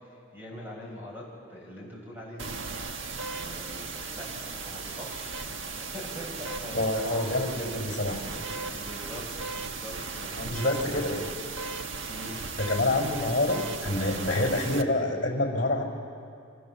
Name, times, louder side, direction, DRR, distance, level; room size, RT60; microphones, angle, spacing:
voice 1, 0.3-1.2 1.5-2.6 3.0-5.5 5.8-7.7 8.0-8.1 8.5-11.2 12.1-12.3, left 1 dB, 10° right, -3 dB, 7.1 m, -43 dB
sound 1, 2.4-14.8, right 4 dB, 70° right, 1.3 m, -36 dB
voice 2, 6.7-8.2 10.4-11.2 12.5-15.8, left 2 dB, 40° left, 2 dB, 5.3 m, -27 dB
28.0 x 26.5 x 7.4 m, 2.4 s
head